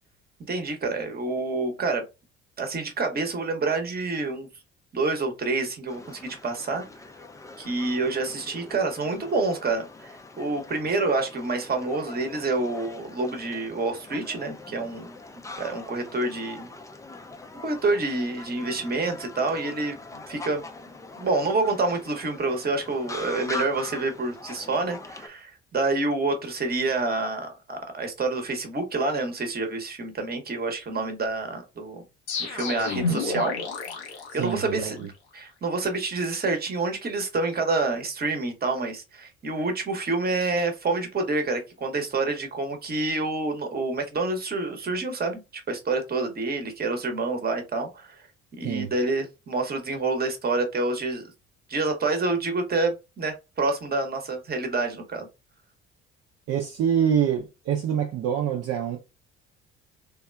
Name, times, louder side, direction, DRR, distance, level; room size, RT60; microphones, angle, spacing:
voice 1, 0.5-2.0 2.6-4.5 4.9-6.8 7.6-10.1 10.4-15.2 15.6-16.7 17.6-20.6 21.2-32.0 32.4-33.5 33.9-34.0 34.3-35.1 35.3-48.2 48.5-51.2 51.7-55.3, right 3 dB, 30° right, 1.0 m, -28 dB
sound 1, 5.9-25.3, left 3 dB, 10° left, 0.4 m, -42 dB
sound 2, 32.3-35.1, left 3 dB, 85° left, 0.7 m, -30 dB
voice 2, 34.4-35.1 48.6-48.9 56.5-59.0, right 8 dB, 50° right, 0.6 m, -25 dB
3.5 x 2.2 x 2.2 m
hypercardioid pair, 55°, 32 cm